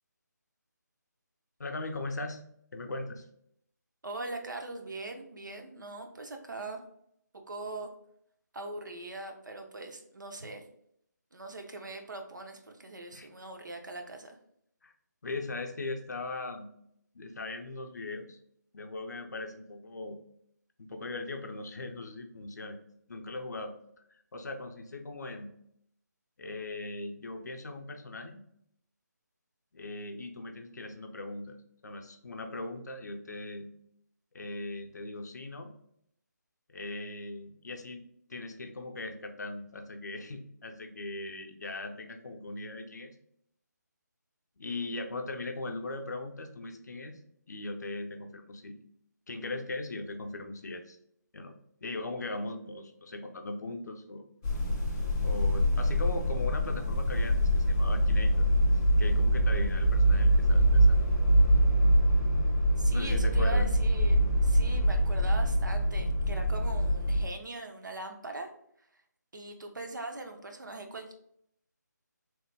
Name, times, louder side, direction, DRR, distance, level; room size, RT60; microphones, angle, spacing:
voice 1, 1.6-2.4 2.7-3.3 13.1-13.3 14.8-14.9 15.2-16.7 17.1-18.4 18.7-20.2 20.8-22.8 23.1-23.7 24.1-25.5 26.4-28.4 29.7-31.6 31.8-33.7 34.3-35.7 36.7-38.0 38.3-43.2 44.6-47.2 47.5-48.8 49.3-51.0 51.3-51.6 51.8-54.2 55.2-58.5 59.0-61.0 62.9-63.7, left 2 dB, 65° left, 5 dB, 0.5 m, -39 dB
voice 2, 4.0-6.8 7.3-7.9 8.5-10.6 11.3-14.4 62.8-68.5 68.9-69.0 69.3-71.1, right 2 dB, 80° right, 4 dB, 0.6 m, -41 dB
sound 1, 54.4-67.2, equal, 10° left, 0.4 m, -24 dB
3.0 x 2.1 x 3.2 m, 0.71 s
figure-of-eight pair, 160°, 10 cm